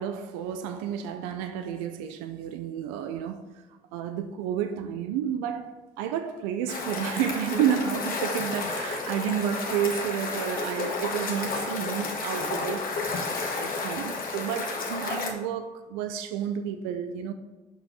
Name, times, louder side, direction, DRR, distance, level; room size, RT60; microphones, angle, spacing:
voice 1, 0.0-3.4 3.9-13.3 13.5-17.3, right 9 dB, 90° right, 0.5 m, -31 dB
sound 1, 6.7-15.3, left 3 dB, 60° left, 1.4 m, -31 dB
5.9 x 5.5 x 5.4 m
hypercardioid pair, 55°, 17 cm